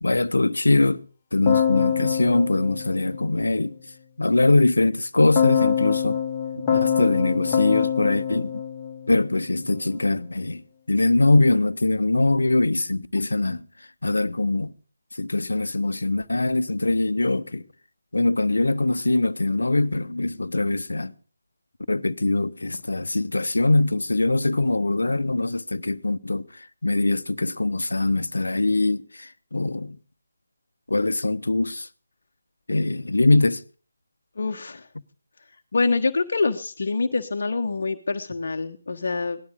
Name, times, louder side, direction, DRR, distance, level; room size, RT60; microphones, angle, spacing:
voice 1, 0.0-1.0 1.3-3.7 4.2-6.2 6.5-8.5 9.1-13.6 14.0-14.7 15.2-17.6 18.1-21.1 21.9-30.0 30.9-31.9 32.7-33.6, left 2 dB, 70° left, 1.1 m, -22 dB
Keyboard (musical), 1.5-3.8 5.4-9.6, left 8 dB, 20° left, 2.0 m, -25 dB
voice 2, 34.4-34.9 35.7-39.4, left 3 dB, 55° left, 1.3 m, -25 dB
18.5 x 12.5 x 5.3 m
figure-of-eight pair, 155°, 0 cm